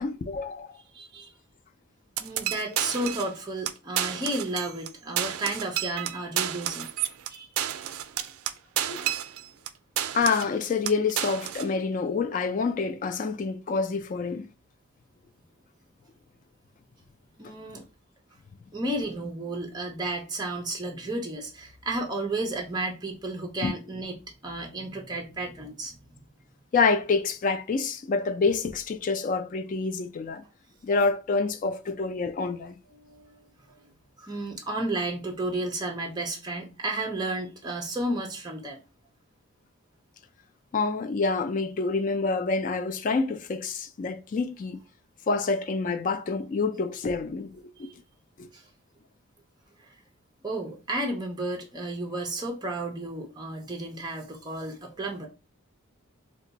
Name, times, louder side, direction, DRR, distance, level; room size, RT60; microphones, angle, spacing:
voice 1, 0.0-0.8 8.8-9.1 10.1-14.5 23.6-23.7 26.7-30.4 30.8-32.8 40.7-44.8 45.3-47.9 48.4-48.5, left 4 dB, 40° left, 0.3 m, -27 dB
voice 2, 0.9-1.3 2.2-6.9 7.3-7.5 17.4-17.8 18.7-26.0 32.9-33.8 34.2-38.8 47.8-47.9 48.5-48.7 49.8-49.9 50.4-55.3, right 2 dB, 20° right, 0.5 m, -32 dB
sound 1, 2.2-3.4 3.7-3.8 4.0-4.9 5.2-9.7 10.0-10.6 10.9-11.7, right 11 dB, 80° right, 0.3 m, -31 dB
2.5 x 2.2 x 3.8 m
head